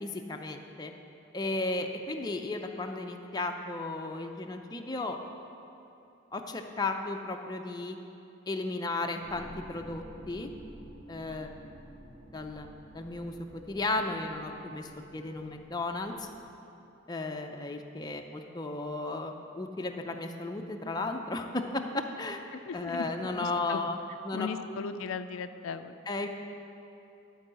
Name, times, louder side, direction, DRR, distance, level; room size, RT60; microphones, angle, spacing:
voice 1, 0.0-0.9 1.3-5.2 6.3-8.0 8.5-10.5 11.1-11.5 12.3-12.7 12.9-16.3 17.1-22.4 22.7-24.0 24.2-24.8 26.1-26.3, left 2 dB, 20° left, 3 dB, 0.5 m, -34 dB
sound 1, 9.2-16.4, equal, 40° right, 1.7 m, -51 dB
voice 2, 22.5-23.8 24.3-25.9, left 5 dB, 80° left, 10 dB, 0.4 m, -37 dB
11.5 x 4.7 x 7.5 m, 2.8 s
head